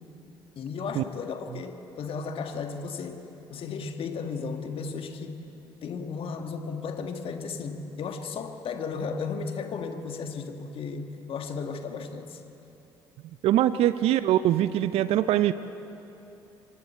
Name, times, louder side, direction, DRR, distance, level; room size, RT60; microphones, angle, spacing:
voice 1, 0.5-5.5 5.8-12.4, left 5 dB, 50° left, 6 dB, 1.8 m, -35 dB
voice 2, 13.4-15.5, right 12 dB, 60° right, 14 dB, 0.6 m, -22 dB
26.5 x 23.0 x 4.5 m, 3.0 s
hypercardioid pair, 50°, 12 cm